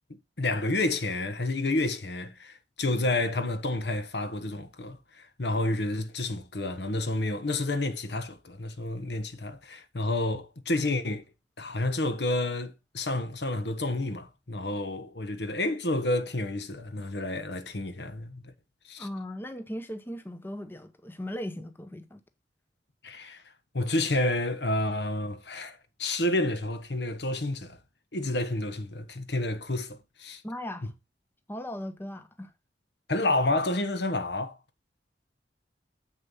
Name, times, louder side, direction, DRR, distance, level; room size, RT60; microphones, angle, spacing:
voice 1, 0.4-11.2 11.6-18.5 18.9-19.1 23.0-23.4 23.7-27.8 28.1-30.4 30.8-30.9 33.1-34.6, left 2 dB, 65° left, 1.3 m, -30 dB
voice 2, 19.0-22.2 30.4-30.9 31.5-32.5, left 1 dB, 10° left, 0.7 m, -38 dB
7.6 x 6.7 x 5.6 m
head